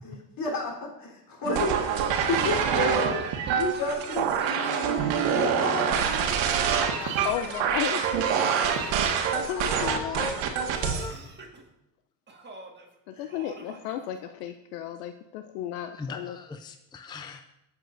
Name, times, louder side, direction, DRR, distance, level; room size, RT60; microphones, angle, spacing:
voice 1, 0.0-3.2 3.5-6.0 6.3-7.6 8.8-9.6 13.1-13.3, left 3 dB, 45° left, -1 dB, 3.7 m, -33 dB
sound 1, 1.4-11.1, right 7 dB, 70° right, 1.5 m, -26 dB
Laughter / Cough, 1.9-5.2 5.5-6.3 7.0-8.1 8.7-9.9 10.7-11.6 12.3-12.9 13.3-14.5, right 3 dB, 20° right, 1.8 m, -45 dB
voice 2, 7.2-8.0 9.5-10.3 13.1-16.4, left 10 dB, 80° left, 8 dB, 0.7 m, -34 dB
voice 3, 9.6-11.2 15.9-17.4, left 3 dB, 10° left, 7 dB, 0.5 m, -38 dB
20.0 x 7.3 x 2.6 m, 0.90 s
supercardioid pair, 90°, 47 cm